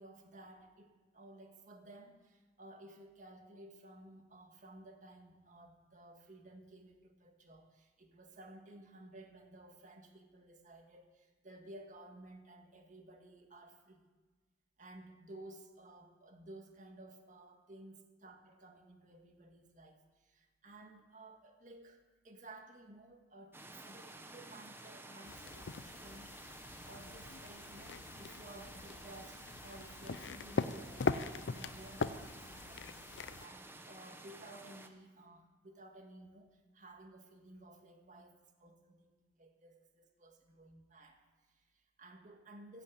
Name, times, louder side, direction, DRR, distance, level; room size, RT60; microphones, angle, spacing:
voice 1, 0.0-14.1 14.8-26.5 26.9-33.0 33.4-42.8, right 2 dB, 45° right, 4 dB, 1.9 m, -55 dB
sound 1, 23.5-34.9, right 2 dB, 15° right, 0.9 m, -52 dB
sound 2, 25.3-33.5, left 4 dB, 80° left, 0.6 m, -41 dB
15.0 x 8.0 x 8.6 m, 1.3 s
head